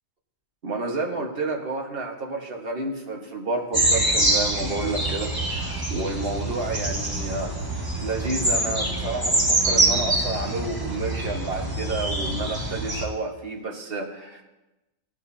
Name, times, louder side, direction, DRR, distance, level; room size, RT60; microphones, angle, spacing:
voice 1, 0.6-7.5 8.0-14.4, right 3 dB, 45° right, 1 dB, 1.6 m, -30 dB
sound 1, 3.7-13.1, right 2 dB, 15° right, 1.4 m, -25 dB
16.0 x 9.2 x 2.8 m, 1.0 s
omnidirectional pair, 1.4 m